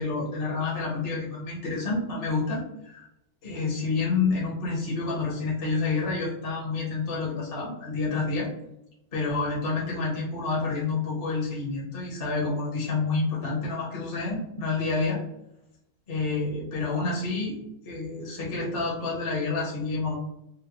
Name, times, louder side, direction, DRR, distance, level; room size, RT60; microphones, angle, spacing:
voice 1, 0.0-3.1 3.4-8.5 9.1-15.2 16.1-17.6 17.8-20.2, left 3 dB, 45° left, -4 dB, 0.7 m, -28 dB
3.7 x 2.1 x 3.0 m, 0.81 s
omnidirectional pair, 2.2 m